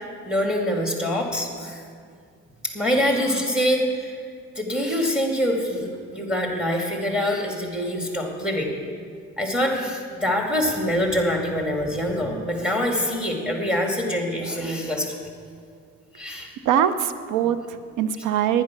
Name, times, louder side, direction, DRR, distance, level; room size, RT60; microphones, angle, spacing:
voice 1, 0.2-1.8 2.6-4.1 4.6-8.7 9.4-15.2 16.2-16.5, equal, 5° right, 1 dB, 2.3 m, -25 dB
voice 2, 16.6-18.6, right 9 dB, 90° right, 12 dB, 0.6 m, -22 dB
10.5 x 10.0 x 5.9 m, 2.2 s
cardioid pair, 90°, 30 cm